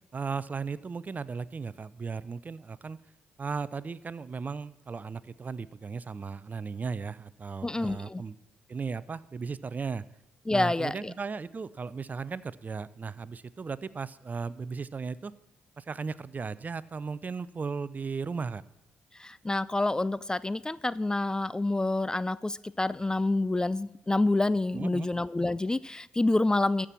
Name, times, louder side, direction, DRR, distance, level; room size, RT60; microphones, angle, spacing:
voice 1, 0.1-3.0 3.4-8.4 8.7-10.0 10.5-15.3 15.8-18.6 24.7-25.1, right 5 dB, 35° right, 19 dB, 0.6 m, -36 dB
voice 2, 7.6-8.2 10.5-10.9 19.2-26.9, left 2 dB, 15° left, 19 dB, 0.4 m, -27 dB
14.0 x 6.1 x 7.4 m, 1.0 s
hypercardioid pair, 50°, 5 cm